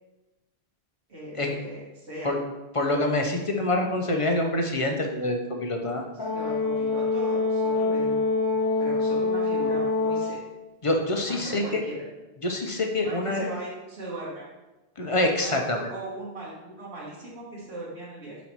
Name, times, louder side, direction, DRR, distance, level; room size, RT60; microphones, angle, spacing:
voice 1, 1.1-2.3 6.1-8.2 8.5-10.4 11.3-12.0 13.0-14.4 15.3-18.4, right 1 dB, 90° right, -8 dB, 1.9 m, -39 dB
voice 2, 2.7-6.0 10.8-11.8 12.4-13.4 15.0-15.9, left 1 dB, 40° left, 2 dB, 0.6 m, -26 dB
Brass instrument, 6.2-10.4, left 3 dB, 20° left, 1.2 m, -25 dB
5.6 x 4.1 x 4.5 m, 1.1 s
omnidirectional pair, 1.1 m